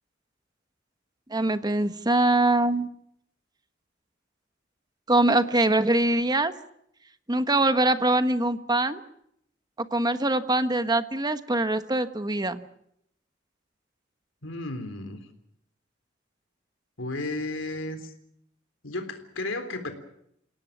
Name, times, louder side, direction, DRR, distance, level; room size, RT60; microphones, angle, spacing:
voice 1, 1.3-2.9 5.1-6.5 7.3-9.0 9.9-12.6, right 2 dB, 20° right, 10 dB, 1.4 m, -23 dB
voice 2, 14.4-15.3 17.0-18.1 18.8-19.9, left 2 dB, 85° left, 8 dB, 3.6 m, -33 dB
28.5 x 18.0 x 7.3 m, 0.72 s
head